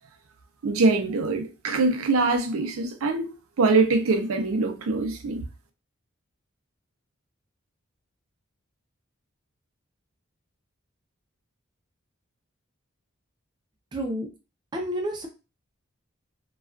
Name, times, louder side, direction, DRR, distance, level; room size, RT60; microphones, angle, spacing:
voice 1, 0.6-5.4, right 3 dB, 85° right, 0.5 m, -23 dB
voice 2, 13.9-14.3 14.7-15.3, equal, 20° right, 0.4 m, -29 dB
2.3 x 2.2 x 2.3 m
head